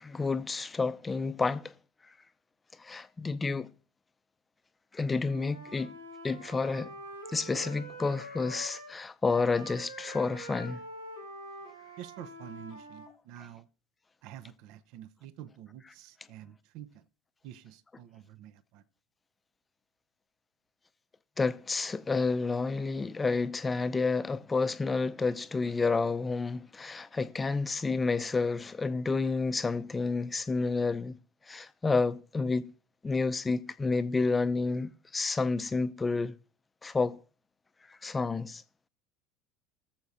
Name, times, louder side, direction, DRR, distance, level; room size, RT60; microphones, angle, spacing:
voice 1, 0.0-1.7 2.8-3.7 4.9-5.9 6.2-6.9 7.3-10.8 21.4-31.2 31.5-32.7 33.0-36.3 36.8-37.2 37.9-38.6, left 4 dB, 20° left, 0.5 m, -30 dB
Wind instrument woodwind instrument, 5.2-9.0 9.3-13.1, equal, 90° right, 1.4 m, -45 dB
voice 2, 12.0-13.7 14.2-17.1 17.4-18.8, right 11 dB, 55° right, 0.5 m, -48 dB
21.5 x 7.1 x 2.6 m
figure-of-eight pair, 75°, 0 cm